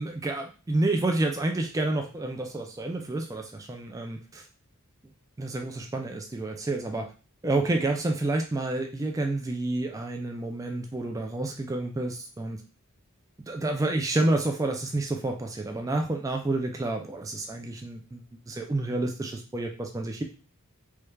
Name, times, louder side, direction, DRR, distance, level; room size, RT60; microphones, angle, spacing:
voice 1, 0.0-4.5 5.4-7.1 7.4-12.6 13.5-20.2, right 2 dB, 15° right, 3 dB, 0.3 m, -29 dB
3.2 x 2.3 x 3.2 m, 0.35 s
head